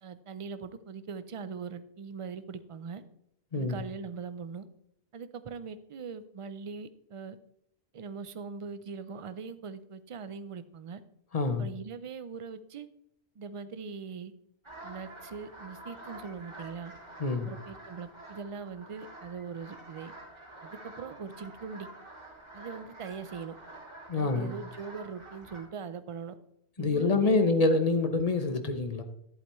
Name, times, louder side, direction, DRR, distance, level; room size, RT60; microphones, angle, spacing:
voice 1, 0.0-3.0 3.5-4.7 5.1-7.4 7.9-11.0 11.6-12.9 13.4-14.3 14.8-16.9 17.4-20.1 20.6-21.9 22.5-23.6 24.2-26.3 26.8-27.6, right 5 dB, 45° right, 13 dB, 0.5 m, -41 dB
voice 2, 11.3-11.7 17.2-17.5 24.1-24.6 26.8-29.0, left 3 dB, 40° left, 8 dB, 0.9 m, -26 dB
sound 1, 14.6-25.6, right 2 dB, 25° right, 2.7 m, -48 dB
11.5 x 8.0 x 3.1 m, 0.75 s
omnidirectional pair, 1.1 m